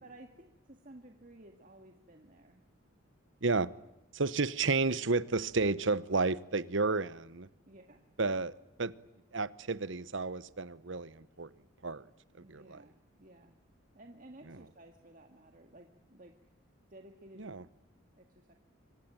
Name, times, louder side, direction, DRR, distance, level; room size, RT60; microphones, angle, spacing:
voice 1, 0.0-2.6 7.7-8.1 12.4-13.6 13.9-16.5 16.9-17.7 18.2-18.5, right 1 dB, 40° right, 1.9 m, -55 dB
voice 2, 4.1-7.5 8.2-8.5 8.8-8.9 9.3-11.5 11.8-12.0 12.5-12.8 17.4-17.6, right 3 dB, 65° right, 1.0 m, -31 dB
26.5 x 23.5 x 9.0 m
head